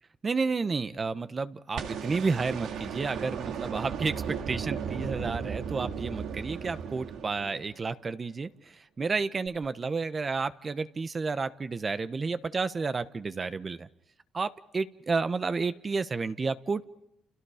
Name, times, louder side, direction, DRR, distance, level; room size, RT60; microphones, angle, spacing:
voice 1, 0.2-4.1 4.5-13.9 14.3-16.8, right 4 dB, 35° right, 12 dB, 1.1 m, -31 dB
sound 1, 1.7-7.9 9.5-9.6, right 7 dB, 80° right, 2.2 m, -36 dB
29.5 x 29.0 x 5.1 m, 0.80 s
cardioid pair, 90°, 0 cm